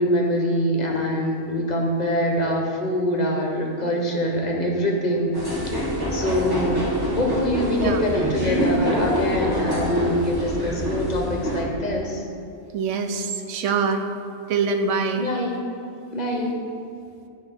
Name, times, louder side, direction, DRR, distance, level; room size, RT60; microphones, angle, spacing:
voice 1, 0.0-5.8 6.1-6.8 7.2-12.2 15.2-15.7 16.1-16.6, left 1 dB, 40° left, 0 dB, 0.8 m, -24 dB
sound 1, 5.3-11.6, right 1 dB, 20° right, 1.3 m, -25 dB
voice 2, 12.7-14.0 14.5-15.2, right 5 dB, 70° right, 6 dB, 0.9 m, -24 dB
10.0 x 3.7 x 4.4 m, 2.6 s
omnidirectional pair, 1.4 m